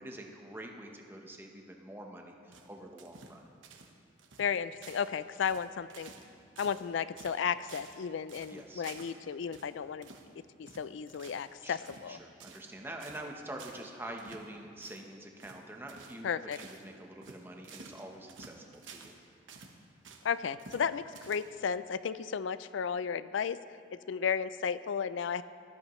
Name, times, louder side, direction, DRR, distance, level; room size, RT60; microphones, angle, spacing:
voice 1, 0.0-3.5 8.5-8.8 11.6-16.3 16.6-19.1, right 1 dB, 10° right, 1 dB, 1.0 m, -46 dB
sound 1, 2.5-3.4 3.6-4.5 4.8-5.1 5.4-6.3 6.6-6.9 7.2-8.0 8.3-9.2 9.5-9.7 10.0-10.3 10.7-11.5 11.8-12.1 12.4-12.7 13.0-13.3 13.6-13.9 14.2-14.5 14.8-15.0 15.4-15.6 15.9-16.2 16.5-16.8 17.2-19.2 19.5-20.3 20.6-20.9 21.1-21.7, right 5 dB, 90° right, 1.2 m, -52 dB
voice 2, 4.4-6.1 6.6-10.1 10.6-12.2 16.2-16.6 20.2-23.6 24.1-25.4, left 7 dB, 80° left, 15 dB, 0.4 m, -34 dB
18.0 x 13.5 x 3.1 m, 2.5 s
head